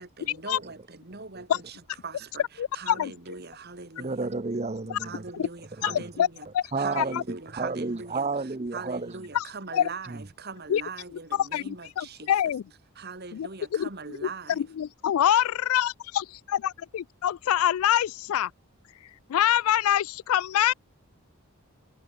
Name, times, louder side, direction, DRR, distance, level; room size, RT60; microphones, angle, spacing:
voice 1, 0.0-4.3 5.0-6.5 6.8-8.3 8.7-12.5 13.0-14.7, right 4 dB, 45° right, 2.1 m, -41 dB
voice 2, 2.6-3.1 5.4-5.5 5.8-6.3 6.5-6.6 6.9-7.2 9.3-9.4 9.7-9.9 10.7-10.8 11.4-12.6 13.3-14.2 14.5-18.5 19.3-20.7, left 10 dB, 75° left, 0.3 m, -25 dB
voice 3, 4.0-5.2 5.9-6.1 6.7-9.2 10.1-10.2, right 3 dB, 30° right, 0.7 m, -31 dB
head